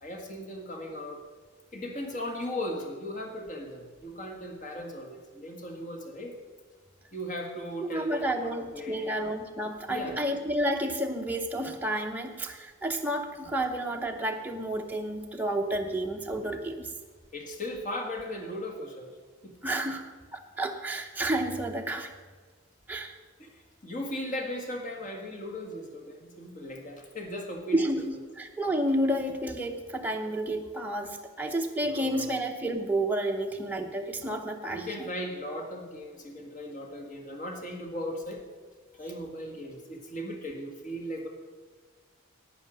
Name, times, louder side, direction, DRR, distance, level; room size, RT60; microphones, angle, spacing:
voice 1, 0.0-1.2 1.7-6.3 7.1-9.2 9.9-10.2 17.3-19.1 19.4-19.5 23.4-23.6 23.8-27.9 31.9-32.4 34.7-38.4 39.0-41.3, left 1 dB, 35° left, 2 dB, 1.7 m, -37 dB
voice 2, 7.8-16.9 19.6-22.1 22.9-23.1 27.7-35.1, right 1 dB, 10° right, 2 dB, 0.7 m, -31 dB
11.0 x 9.0 x 6.4 m, 1.5 s
head